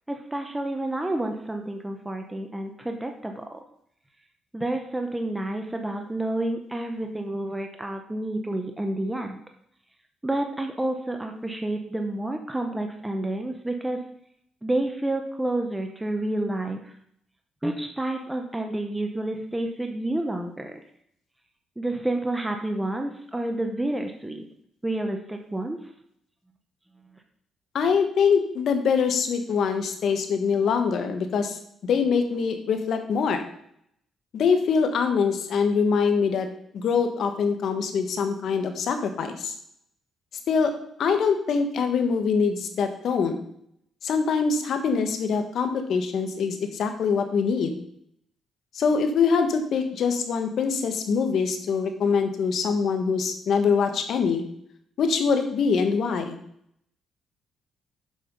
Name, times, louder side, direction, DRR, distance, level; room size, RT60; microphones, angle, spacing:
voice 1, 0.1-3.6 4.5-9.4 10.2-14.0 14.6-16.9 17.6-20.8 21.8-24.5 24.8-25.8, right 1 dB, 10° right, 4 dB, 0.9 m, -29 dB
voice 2, 27.7-33.4 34.3-36.5 36.7-39.5 40.5-40.7 41.0-43.4 44.0-47.8 48.7-54.4 55.0-56.4, left 5 dB, 65° left, 7 dB, 1.3 m, -24 dB
7.7 x 5.8 x 5.5 m, 0.69 s
cardioid pair, 90°, 0 cm